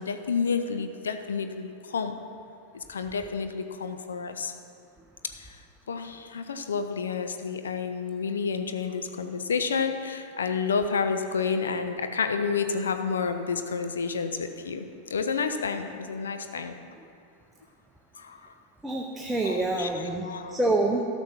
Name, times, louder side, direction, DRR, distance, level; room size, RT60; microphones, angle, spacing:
voice 1, 0.0-2.2 2.7-4.6 5.2-5.6 5.9-16.8 18.2-18.5 19.4-20.6, left 5 dB, 70° left, 8 dB, 0.6 m, -30 dB
voice 2, 18.8-21.1, right 2 dB, 10° right, 1 dB, 0.7 m, -27 dB
13.0 x 6.2 x 5.6 m, 2.4 s
figure-of-eight pair, 90°, 0 cm